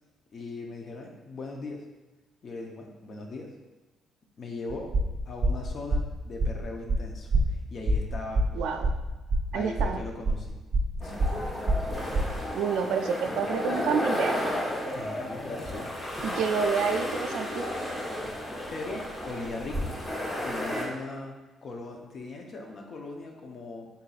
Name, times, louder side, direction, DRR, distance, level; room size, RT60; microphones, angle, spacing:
voice 1, 0.3-1.8 2.4-3.5 4.4-4.9 5.3-8.5 9.5-10.6 11.0-11.5 14.9-15.9 18.7-20.0 20.4-23.9, left 3 dB, 50° left, 2 dB, 0.7 m, -39 dB
sound 1, 4.7-12.4, right 1 dB, 40° right, 0.8 m, -26 dB
voice 2, 8.5-8.9 9.5-10.0 12.5-14.4 16.2-17.6, right 6 dB, 85° right, 6 dB, 0.3 m, -28 dB
sound 2, 11.0-20.9, left 1 dB, 20° left, 1.1 m, -33 dB
4.0 x 3.9 x 2.4 m, 1.2 s
cardioid pair, 90°, 0 cm